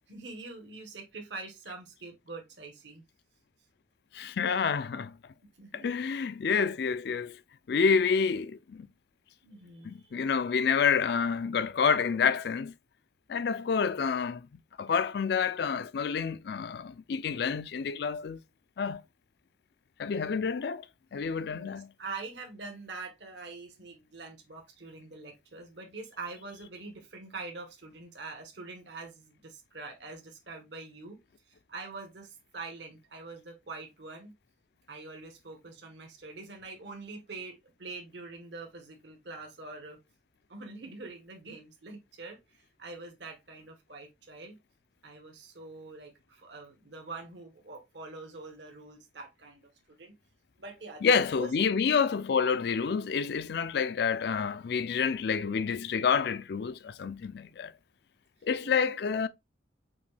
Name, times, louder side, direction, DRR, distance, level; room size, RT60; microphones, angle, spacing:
voice 1, 0.1-3.0 4.2-4.4 5.6-5.9 9.4-10.4 21.5-31.2 31.7-34.3 34.9-40.0 40.5-42.4 42.8-44.6 45.0-49.6 49.9-50.1 50.6-51.1 51.4-51.5 58.6-59.0, right 3 dB, 70° right, 1.1 m, -44 dB
voice 2, 4.1-5.2 5.7-7.4 7.7-8.9 9.8-12.7 13.3-14.4 14.8-18.4 18.8-19.0 20.0-20.8 21.1-21.9 51.0-57.7 58.4-59.3, left 6 dB, 60° left, 0.4 m, -28 dB
5.2 x 2.7 x 3.2 m
head